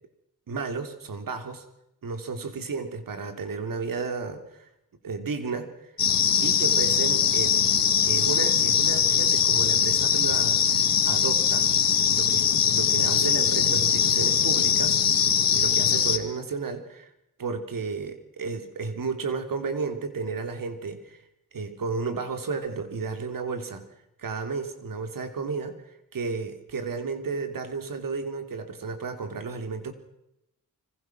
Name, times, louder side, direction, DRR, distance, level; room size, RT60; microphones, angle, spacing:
voice 1, 0.5-1.6 2.0-4.7 5.0-5.7 6.4-7.8 8.0-11.7 12.1-12.4 12.7-15.0 15.5-17.1 17.4-21.2 21.5-23.9 24.2-25.8 26.1-29.9, right 4 dB, 75° right, 7 dB, 3.4 m, -32 dB
sound 1, 6.0-16.2, left 8 dB, 85° left, 2.3 m, -22 dB
26.0 x 25.5 x 6.2 m, 0.84 s
cardioid pair, 65°, 33 cm